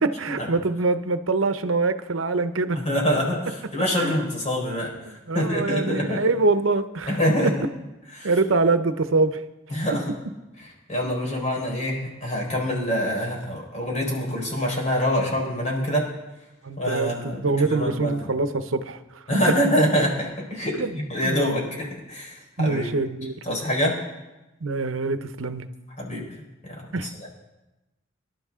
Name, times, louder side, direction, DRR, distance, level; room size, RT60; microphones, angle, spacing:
voice 1, 0.0-2.8 4.0-4.2 5.1-7.5 8.2-9.4 11.0-11.1 16.6-19.2 20.7-21.0 21.2-21.6 22.6-23.4 24.6-25.7 26.9-27.3, right 3 dB, 85° right, 10 dB, 0.8 m, -24 dB
voice 2, 2.8-4.9 5.3-6.2 7.1-7.5 8.2-8.3 9.7-10.0 10.9-16.1 16.8-18.3 19.3-20.8 21.1-22.9 23.4-24.0 26.0-26.2 26.6-27.3, equal, 35° left, -1 dB, 4.4 m, -25 dB
24.0 x 12.0 x 3.7 m, 1.0 s
head